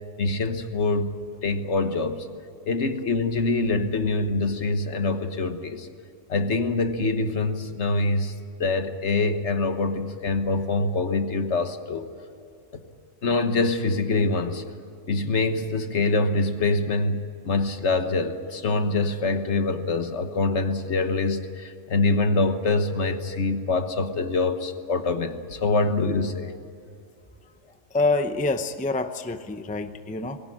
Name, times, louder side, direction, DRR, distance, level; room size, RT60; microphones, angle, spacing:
voice 1, 0.2-1.1 1.4-2.3 2.7-5.9 6.3-8.3 8.6-12.1 12.7-12.8 13.2-14.6 15.1-26.5, left 3 dB, 60° left, 8 dB, 1.5 m, -25 dB
voice 2, 27.9-30.4, left 3 dB, 10° left, 9 dB, 0.6 m, -26 dB
21.5 x 18.0 x 9.8 m, 2.4 s
omnidirectional pair, 1.4 m